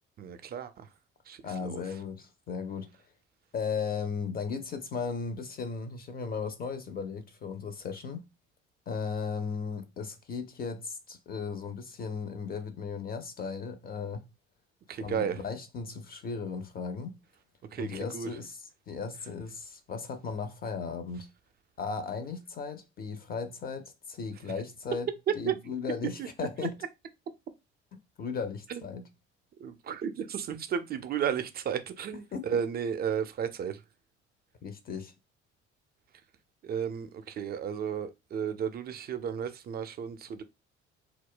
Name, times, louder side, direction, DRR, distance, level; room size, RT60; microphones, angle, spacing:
voice 1, 0.2-0.9 1.3-1.8 14.9-15.4 17.7-18.3 25.3-25.5 26.2-26.3 28.7-28.8 29.6-33.8 36.6-40.4, right 8 dB, 30° right, 0.4 m, -33 dB
voice 2, 1.4-2.9 3.5-8.2 8.9-14.3 15.0-17.2 17.8-21.3 21.8-25.1 25.3-26.7 28.2-29.1 32.3-32.5 34.6-35.1, left 5 dB, 25° left, 0.5 m, -36 dB
2.3 x 2.1 x 3.5 m
figure-of-eight pair, 50°, 35 cm